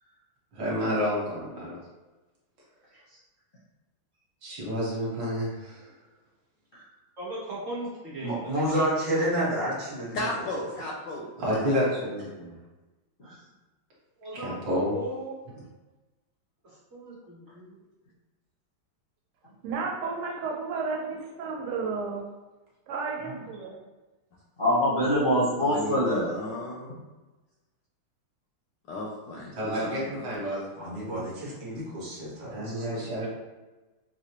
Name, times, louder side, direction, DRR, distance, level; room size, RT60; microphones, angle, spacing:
voice 1, 0.6-1.7 4.4-5.8 11.4-12.5 14.4-14.9 29.6-31.2 32.5-33.3, equal, 60° right, -6 dB, 1.6 m, -30 dB
voice 2, 7.2-8.5 14.2-15.3 16.6-17.8, right 1 dB, 45° right, -8 dB, 1.0 m, -38 dB
voice 3, 8.2-10.3 30.7-33.1, right 1 dB, 30° right, -7 dB, 0.6 m, -30 dB
voice 4, 10.1-11.3 11.7-12.1 25.6-27.0 28.9-30.3, left 2 dB, 75° left, -2 dB, 1.1 m, -35 dB
voice 5, 19.6-22.2 22.9-23.8, right 4 dB, 85° right, 0 dB, 1.6 m, -32 dB
voice 6, 24.6-26.3, equal, 45° left, -10 dB, 0.6 m, -23 dB
4.6 x 2.1 x 2.8 m, 1.2 s
omnidirectional pair, 2.3 m